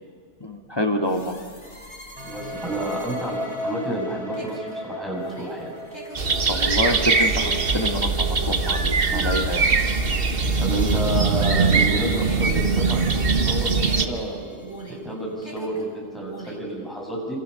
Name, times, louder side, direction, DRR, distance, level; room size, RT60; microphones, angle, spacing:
voice 1, 0.4-1.4 6.5-9.6, left 1 dB, 20° left, 3 dB, 2.1 m, -27 dB
sound 1, 1.0-11.9 12.2-15.1 15.4-16.7, right 1 dB, 35° left, 4.5 m, -43 dB
voice 2, 2.2-5.7 9.1-9.3 10.6-14.6 14.9-17.4, right 1 dB, ahead, -3 dB, 7.4 m, -30 dB
sound 2, 2.2-9.9, equal, 25° right, 2.9 m, -36 dB
sound 3, 6.1-14.1, right 4 dB, 45° right, 1.5 m, -21 dB
27.5 x 27.0 x 6.7 m, 2.2 s
omnidirectional pair, 1.4 m